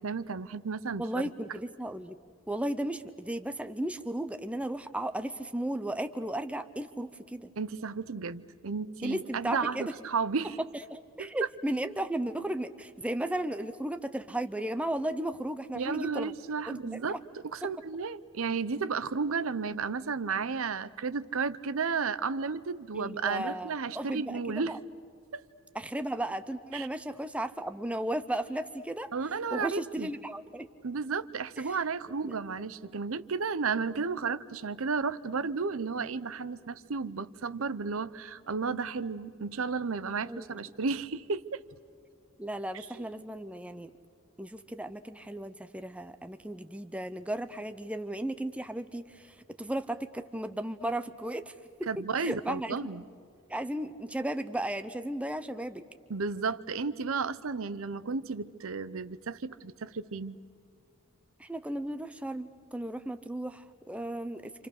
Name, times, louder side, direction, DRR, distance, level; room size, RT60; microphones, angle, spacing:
voice 1, 0.0-1.2 7.6-10.6 11.2-11.3 15.7-17.2 17.4-24.8 25.3-25.4 26.7-26.9 29.1-30.1 30.8-41.6 42.7-43.0 51.9-53.0 56.1-60.4, right 5 dB, 70° right, 15 dB, 0.7 m, -33 dB
voice 2, 1.0-2.2 2.5-7.5 9.0-9.9 10.9-16.3 16.7-17.0 17.6-17.7 22.9-24.8 25.7-29.1 29.5-30.7 32.2-32.3 40.3-40.6 42.4-43.9 44.4-51.5 51.8-51.9 52.2-52.8 53.5-55.8 61.4-64.7, right 1 dB, 5° right, 10 dB, 0.6 m, -35 dB
29.0 x 27.0 x 6.5 m, 2.3 s
head